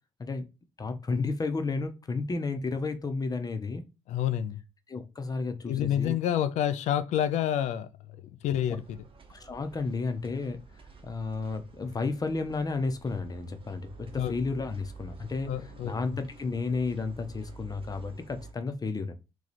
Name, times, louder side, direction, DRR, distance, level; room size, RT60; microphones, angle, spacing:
voice 1, 0.8-3.8 4.9-6.1 8.6-8.8 9.3-10.6 11.0-19.1, left 3 dB, 30° left, 0.8 m, -32 dB
voice 2, 4.1-4.6 5.7-7.9 8.4-9.0 14.2-14.3 15.5-15.9, left 10 dB, 75° left, 0.4 m, -28 dB
sound 1, 8.7-18.5, right 4 dB, 45° right, 1.0 m, -49 dB
3.0 x 2.3 x 4.0 m
hypercardioid pair, 50°, 12 cm